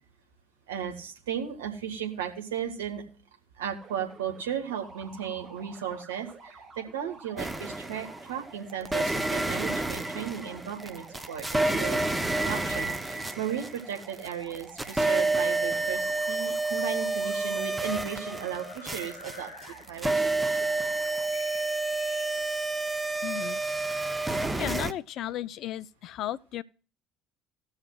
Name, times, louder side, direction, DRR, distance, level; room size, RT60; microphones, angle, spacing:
voice 1, 0.7-3.0 3.6-19.5 19.9-20.6 22.3-22.4, right 9 dB, 70° right, 1.2 m, -35 dB
sound 1, 3.8-21.3, right 3 dB, 30° right, 1.4 m, -50 dB
sound 2, 7.4-8.3 8.8-14.3 14.5-24.9, right 2 dB, 10° right, 0.7 m, -29 dB
sound 3, 15.6-23.0, left 5 dB, 75° left, 0.8 m, -51 dB
voice 2, 23.2-23.6 23.9-24.0 24.6-26.6, left 12 dB, 50° left, 0.3 m, -34 dB
18.0 x 6.3 x 2.3 m
figure-of-eight pair, 60°, 0 cm